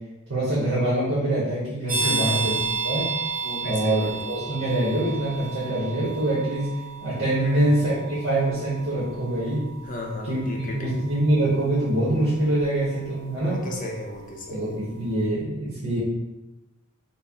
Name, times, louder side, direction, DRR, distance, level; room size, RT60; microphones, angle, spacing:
voice 1, 0.3-2.6 2.8-3.1 3.6-9.7 10.2-13.6 14.5-16.0, right 1 dB, 55° right, -8 dB, 0.9 m, -24 dB
sound 1, 1.9-14.4, right 4 dB, 40° right, 1.1 m, -33 dB
voice 2, 2.0-2.6 3.4-4.1 7.4-7.7 9.9-10.9 13.4-14.6, left 1 dB, 40° left, 0 dB, 0.6 m, -34 dB
4.1 x 2.0 x 3.5 m, 1.0 s
head